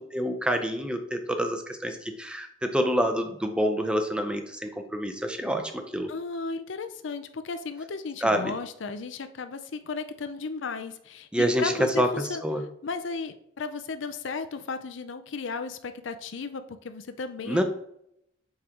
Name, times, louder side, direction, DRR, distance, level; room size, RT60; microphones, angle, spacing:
voice 1, 0.0-6.1 8.2-8.5 11.3-12.1 12.4-12.6 17.5-17.6, equal, 5° right, 6 dB, 0.6 m, -27 dB
voice 2, 6.1-12.4 12.8-17.6, left 4 dB, 75° left, 9 dB, 0.5 m, -35 dB
7.2 x 4.9 x 2.9 m, 0.74 s
head